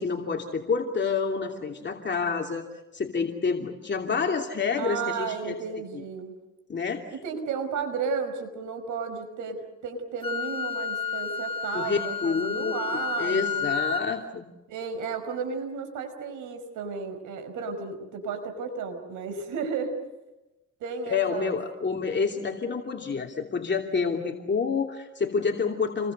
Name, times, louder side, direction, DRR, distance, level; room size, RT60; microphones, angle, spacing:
voice 1, 0.0-2.6 2.9-5.5 5.9-6.0 6.7-7.0 11.7-14.4 21.1-26.1, left 5 dB, 35° left, 1 dB, 2.8 m, -28 dB
voice 2, 4.8-6.3 7.1-13.6 14.7-20.0 20.8-21.5, right 5 dB, 85° right, 7 dB, 5.4 m, -33 dB
Wind instrument woodwind instrument, 10.2-14.1, left 5 dB, 15° left, 2.1 m, -31 dB
29.5 x 23.0 x 6.8 m, 1.0 s
cardioid pair, 90°, 30 cm